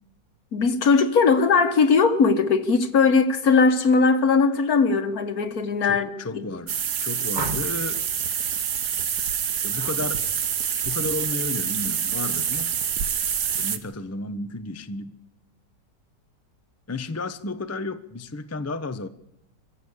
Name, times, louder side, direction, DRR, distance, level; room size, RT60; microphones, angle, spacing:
voice 1, 0.5-6.4, left 4 dB, 55° left, 1.8 m, -19 dB
voice 2, 5.8-6.7 7.0-8.0 9.6-10.2 10.8-12.7 13.6-15.2 16.9-19.1, left 2 dB, 15° left, 0.5 m, -32 dB
sound 1, 6.7-13.8, right 8 dB, 65° right, 1.7 m, -26 dB
sound 2, 7.3-8.0 9.7-10.0 10.4-10.7, right 2 dB, 25° right, 1.5 m, -34 dB
23.5 x 15.0 x 8.3 m
omnidirectional pair, 1.9 m